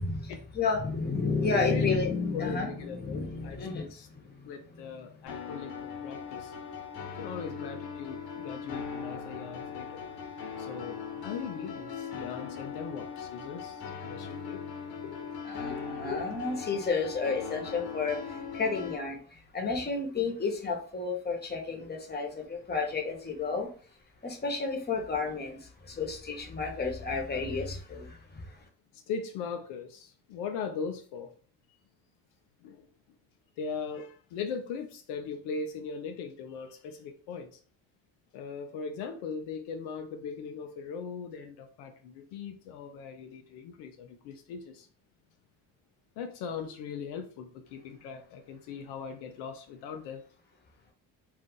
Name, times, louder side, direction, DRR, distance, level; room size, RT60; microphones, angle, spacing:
voice 1, 0.0-3.8 4.1-4.5 15.4-18.2 18.5-19.2 19.5-23.7 24.2-25.6 26.0-28.1, left 4 dB, 25° left, 1.0 m, -31 dB
voice 2, 2.3-4.1 4.4-6.5 7.1-10.0 10.6-14.6 15.0-15.3 15.7-16.3 28.9-31.3 32.6-32.9 33.6-37.6 38.3-44.9 46.2-50.2, left 5 dB, 85° left, 0.6 m, -39 dB
sound 1, 5.3-19.0, left 6 dB, 60° left, 0.9 m, -39 dB
2.5 x 2.4 x 3.7 m
supercardioid pair, 70°, 41 cm